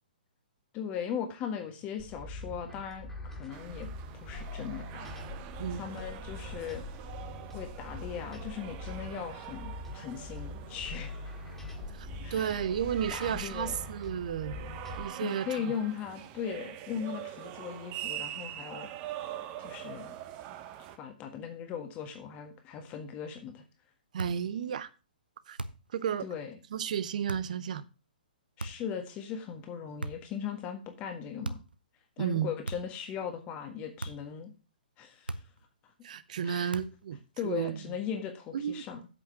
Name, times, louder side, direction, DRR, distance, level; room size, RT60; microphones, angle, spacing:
voice 1, 0.7-3.9 4.2-5.1 5.7-6.8 7.5-11.3 12.2-12.6 13.1-13.9 15.2-18.9 19.6-20.2 21.0-23.6 26.2-26.6 28.6-31.6 32.2-34.5 35.0-35.4 36.4-36.8 37.4-39.1, left 8 dB, 25° left, 1.6 m, -38 dB
sound 1, 2.0-15.1, left 2 dB, 5° left, 2.4 m, -43 dB
sound 2, 3.5-21.0, right 12 dB, 30° right, 1.1 m, -44 dB
voice 2, 11.9-15.7 24.1-24.9 25.5-25.6 25.9-26.3 26.7-27.9 32.2-32.5 36.0-37.2 37.4-37.8 38.5-38.8, right 8 dB, 55° right, 0.8 m, -33 dB
sound 3, 24.2-24.5 25.6-25.9 27.3-27.5 28.6-29.0 30.0-30.4 31.4-31.8 32.6-33.0 34.0-34.3 35.3-35.7 36.7-37.1, right 2 dB, 85° right, 0.8 m, -39 dB
8.1 x 5.7 x 6.8 m
figure-of-eight pair, 120°, 5 cm